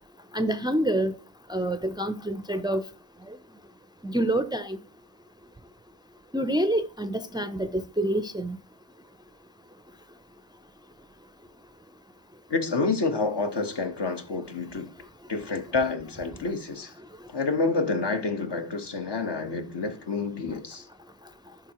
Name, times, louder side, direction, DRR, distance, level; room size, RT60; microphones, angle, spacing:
voice 1, 0.3-1.1 1.5-2.8 4.0-4.8 6.3-8.6, right 1 dB, 10° right, 0.4 m, -27 dB
voice 2, 12.5-14.9 15.3-16.9 17.3-20.9, left 3 dB, 60° left, 1.2 m, -28 dB
11.0 x 3.7 x 2.9 m
cardioid pair, 50°, 46 cm